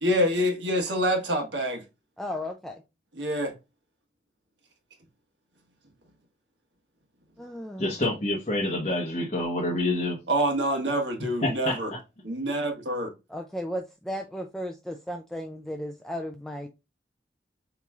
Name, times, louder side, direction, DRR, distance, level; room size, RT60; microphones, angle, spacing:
voice 1, 0.0-1.8 3.2-3.5 10.3-11.9 12.2-13.1, equal, 85° right, 1.3 m, -26 dB
voice 2, 2.2-2.8 7.4-7.9 13.3-16.7, equal, ahead, 0.3 m, -35 dB
voice 3, 7.8-10.2 11.4-11.8, left 1 dB, 35° left, 1.0 m, -27 dB
6.7 x 3.0 x 2.4 m
head